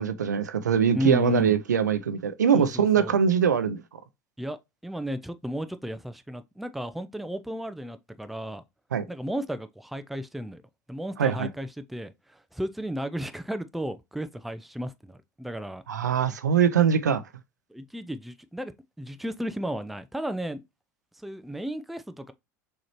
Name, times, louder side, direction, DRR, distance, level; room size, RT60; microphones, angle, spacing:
voice 1, 0.0-3.8 8.9-9.0 11.2-11.5 15.9-17.2, right 7 dB, 80° right, 0.5 m, -22 dB
voice 2, 0.9-1.6 2.5-3.2 4.4-8.6 9.1-10.6 10.9-15.8 17.7-18.7 19.0-20.6 21.2-22.3, equal, ahead, 0.4 m, -34 dB
6.3 x 2.9 x 2.9 m
figure-of-eight pair, 75°, 9 cm